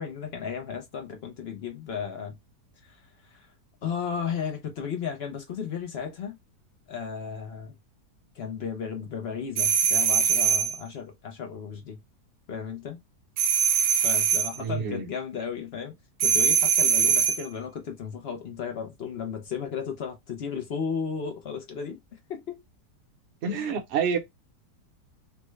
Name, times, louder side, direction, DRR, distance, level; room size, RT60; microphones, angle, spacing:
voice 1, 0.0-2.3 2.8-3.0 3.3-3.5 3.8-6.4 6.9-7.7 8.4-12.0 12.5-13.0 13.9-15.9 16.2-22.0 22.3-22.6 23.5-23.7, left 6 dB, 60° left, 0.6 m, -34 dB
sound 1, 9.6-10.8 13.4-14.6 16.2-17.4, right 8 dB, 80° right, 1.2 m, -22 dB
voice 2, 14.6-15.1 23.4-24.2, right 6 dB, 55° right, 0.8 m, -28 dB
3.3 x 2.2 x 3.1 m
omnidirectional pair, 1.8 m